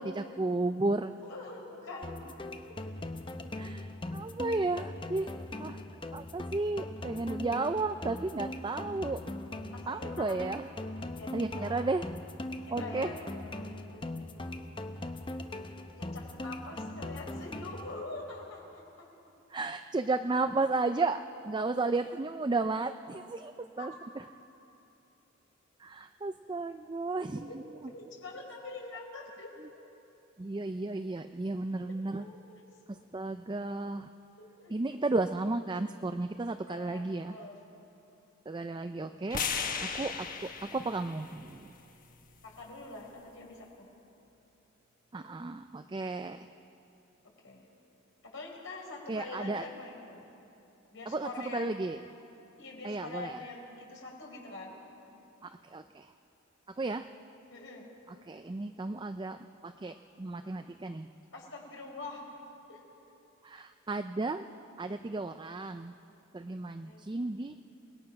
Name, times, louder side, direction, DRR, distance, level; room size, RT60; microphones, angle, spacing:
voice 1, 0.0-1.1 3.6-5.8 6.1-9.2 9.9-10.7 11.3-12.0 12.7-13.1 19.5-24.2 25.8-27.9 29.6-29.7 30.4-32.3 32.9-34.1 34.7-37.5 38.5-39.5 39.8-41.7 45.1-46.5 49.1-49.6 51.1-52.0 52.8-53.4 55.4-56.1 56.7-57.1 58.1-61.1 63.4-64.5 64.8-65.9 66.3-67.5, right 3 dB, 20° right, 8 dB, 0.4 m, -33 dB
voice 2, 1.2-2.2 2.7-2.9 9.7-10.4 11.0-11.4 11.6-11.9 12.6-13.2 16.0-19.1 23.8-23.9 27.5-27.6 27.9-29.5 32.1-32.4 34.4-34.7 36.7-37.6 39.6-39.7 42.4-43.9 47.4-47.7 48.2-50.2 50.9-51.7 52.6-54.8 57.5-57.9 61.3-62.2 62.7-62.8 66.8-67.1, left 2 dB, 75° left, -1 dB, 4.7 m, -44 dB
sound 1, 2.0-18.0, left 1 dB, 25° left, 0.8 m, -40 dB
sound 2, 39.3-43.5, left 6 dB, 45° left, 1.3 m, -38 dB
28.5 x 19.5 x 5.9 m, 2.8 s
head